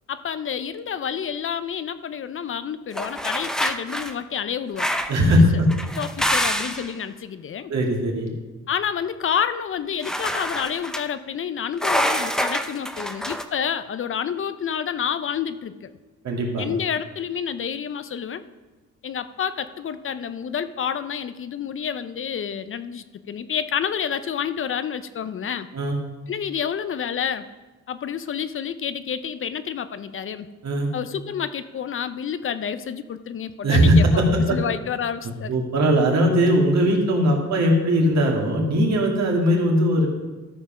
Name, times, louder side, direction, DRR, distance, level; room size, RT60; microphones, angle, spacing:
voice 1, 0.1-4.9 5.3-5.4 6.0-7.7 8.7-15.9 16.6-18.4 19.0-25.7 26.3-27.5 27.9-30.5 30.9-34.2 34.5-35.5, left 8 dB, 45° left, 13 dB, 0.5 m, -29 dB
sound 1, 2.9-4.1 4.8-5.2 5.7-6.9 10.0-11.0 11.8-13.4, equal, ahead, 0.7 m, -26 dB
voice 2, 5.1-5.7 7.7-8.3 16.2-16.7 25.7-26.0 30.6-30.9 33.6-34.6 35.5-40.1, equal, 60° right, 0 dB, 2.5 m, -19 dB
13.0 x 5.3 x 5.9 m, 1.2 s
cardioid pair, 90°, 30 cm